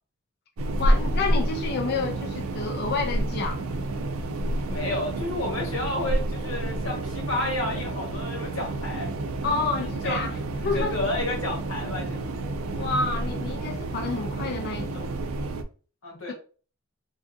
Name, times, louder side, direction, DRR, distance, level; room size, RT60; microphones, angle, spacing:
sound 1, 0.6-15.6, right 1 dB, 85° right, 0.4 m, -29 dB
voice 1, 0.8-3.7 9.4-10.3 10.6-11.0 12.7-15.1 16.3-16.4, left 4 dB, 50° left, 0.3 m, -29 dB
voice 2, 4.7-9.1 9.5-9.6 10.0-10.2 10.7-12.3 16.0-16.3, left 1 dB, 70° left, 1.3 m, -31 dB
3.3 x 2.5 x 2.5 m
head